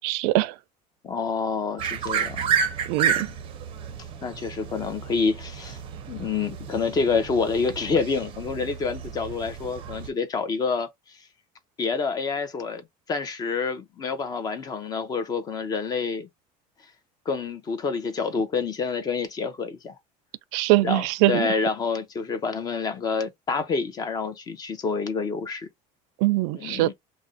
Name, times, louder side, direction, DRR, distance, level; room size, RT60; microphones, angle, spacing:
voice 1, 0.0-0.5 2.9-3.3 20.5-21.5 26.2-26.9, right 18 dB, 90° right, 0.4 m, -22 dB
voice 2, 1.0-2.6 3.0-3.3 4.2-5.8 6.1-10.9 11.8-16.3 17.3-19.9 20.8-25.7 26.5-26.9, left 5 dB, 25° left, 0.5 m, -28 dB
sound 1, 1.8-10.1, right 7 dB, 30° right, 0.5 m, -31 dB
2.5 x 2.0 x 3.8 m
cardioid pair, 170°, 17 cm